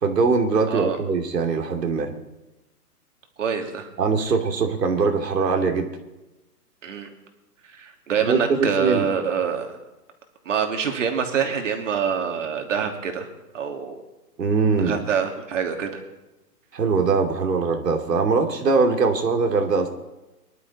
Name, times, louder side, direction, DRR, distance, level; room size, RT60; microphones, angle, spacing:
voice 1, 0.0-2.1 4.0-5.9 8.2-9.1 14.4-15.0 16.7-19.9, right 4 dB, 85° right, 3 dB, 2.8 m, -21 dB
voice 2, 0.7-1.0 3.4-3.9 6.8-7.1 7.8-9.7 10.5-13.3 13.5-14.0 14.8-16.0, right 6 dB, 50° right, 4 dB, 2.7 m, -25 dB
24.0 x 11.5 x 4.2 m, 1.0 s
hypercardioid pair, 170°, 48 cm